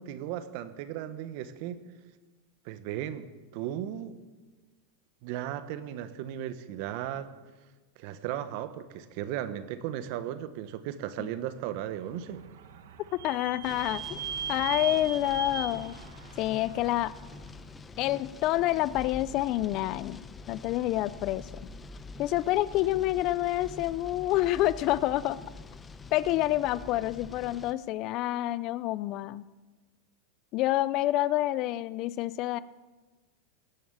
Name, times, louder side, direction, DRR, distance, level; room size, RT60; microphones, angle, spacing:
voice 1, 0.0-1.8 2.6-4.2 5.2-7.3 8.0-12.4, right 11 dB, 60° right, 12 dB, 1.2 m, -36 dB
Vehicle / Squeak, 11.8-17.4, right 7 dB, 80° right, 1.3 m, -39 dB
voice 2, 13.2-14.2 14.5-16.0 16.4-17.1 18.0-21.7 22.2-25.4 26.1-29.4 30.5-32.6, left 15 dB, 45° left, 18 dB, 0.5 m, -28 dB
sound 1, 13.6-27.7, left 3 dB, 15° left, 0.8 m, -46 dB
17.0 x 7.2 x 8.8 m, 1.3 s
supercardioid pair, 125°, 0 cm